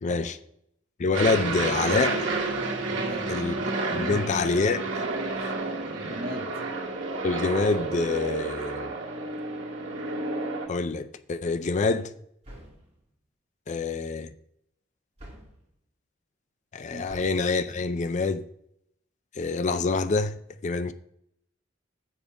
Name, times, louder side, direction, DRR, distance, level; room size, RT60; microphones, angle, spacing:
voice 1, 0.0-0.4 1.0-2.3 3.3-3.5 3.9-5.0 5.4-5.5 7.2-8.9 10.7-12.1 13.7-14.3 16.7-18.4 19.3-20.4 20.6-20.9, left 4 dB, 40° left, 0.4 m, -26 dB
Aircraft, 1.1-10.7, right 3 dB, 75° right, 1.7 m, -30 dB
voice 2, 2.9-3.3 3.9-4.2 5.8-6.5 16.9-17.0, right 1 dB, 50° right, 1.3 m, -37 dB
sound 1, 12.4-13.0 15.2-15.7 17.1-17.5, equal, 30° right, 2.4 m, -46 dB
7.3 x 5.1 x 7.0 m
head